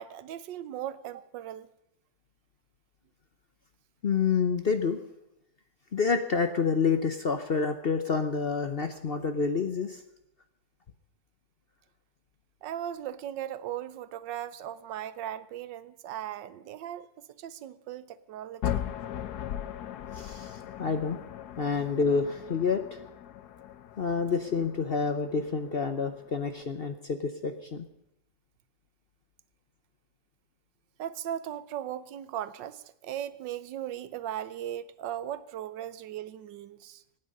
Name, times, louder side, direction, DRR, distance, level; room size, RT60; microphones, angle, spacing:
voice 1, 0.0-1.7 12.6-18.9 31.0-37.0, right 11 dB, 85° right, 15 dB, 1.4 m, -38 dB
voice 2, 4.0-5.0 5.9-10.0 20.1-21.2 21.6-23.0 24.0-27.9, left 5 dB, 50° left, 8 dB, 0.7 m, -28 dB
sound 1, 18.6-26.6, left 10 dB, 65° left, 1.3 m, -39 dB
25.0 x 9.3 x 5.3 m, 0.82 s
omnidirectional pair, 1.9 m